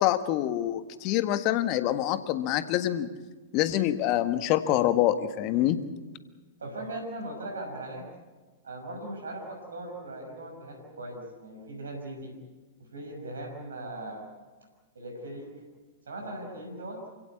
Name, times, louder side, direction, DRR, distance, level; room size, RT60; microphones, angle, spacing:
voice 1, 0.0-3.1 3.5-5.8, left 13 dB, 40° left, 10 dB, 1.6 m, -26 dB
voice 2, 6.6-8.1 8.6-12.4 12.8-14.2 14.9-15.5 16.1-17.0, right 1 dB, 75° right, 1 dB, 6.0 m, -39 dB
27.5 x 16.5 x 8.4 m, 1.3 s
figure-of-eight pair, 105°, 0 cm